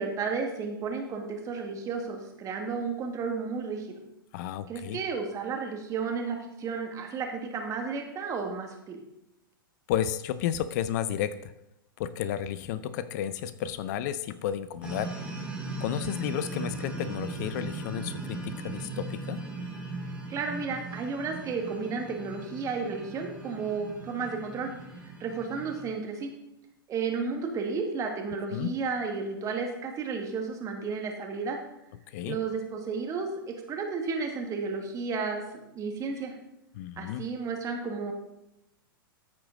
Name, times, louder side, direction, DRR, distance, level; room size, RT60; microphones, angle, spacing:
voice 1, 0.0-4.0 4.7-9.0 20.3-24.7 25.2-26.3 26.9-31.6 32.3-35.4 35.7-36.3 37.0-38.1, right 5 dB, 25° right, 3 dB, 1.8 m, -32 dB
voice 2, 4.3-5.0 9.9-11.5 12.0-15.1 15.8-19.4 28.5-28.7 32.1-32.4 36.7-37.3, left 10 dB, 50° left, 14 dB, 0.5 m, -32 dB
sound 1, 14.8-25.9, right 2 dB, 5° right, 2.6 m, -38 dB
14.0 x 4.9 x 4.0 m, 0.89 s
hypercardioid pair, 105°, 12 cm